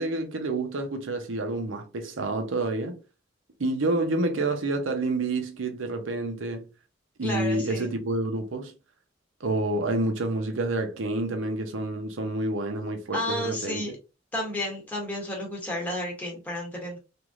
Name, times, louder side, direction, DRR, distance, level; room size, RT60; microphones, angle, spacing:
voice 1, 0.0-3.0 3.6-6.7 7.2-8.7 9.4-13.9, right 2 dB, 70° right, 0.7 m, -28 dB
voice 2, 7.2-7.9 13.1-13.9 14.3-17.0, left 1 dB, 10° left, 0.9 m, -32 dB
3.1 x 2.6 x 2.4 m
head